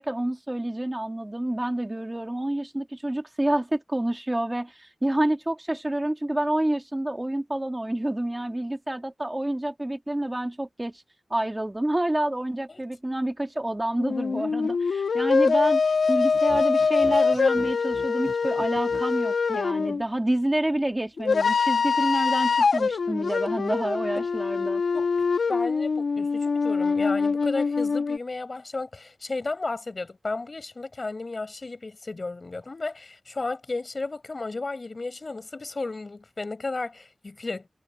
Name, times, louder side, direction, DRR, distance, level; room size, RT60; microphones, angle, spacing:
voice 1, 0.0-11.0 11.3-15.8 16.1-24.8, right 1 dB, 15° right, 2.5 m, -28 dB
sound 1, 14.0-20.0 21.2-28.2, left 5 dB, 80° left, 1.2 m, -24 dB
sound 2, 16.3-19.1, right 3 dB, 45° right, 8.0 m, -42 dB
voice 2, 25.5-37.7, left 3 dB, 40° left, 5.0 m, -33 dB
wide cardioid pair, 90°, 0 cm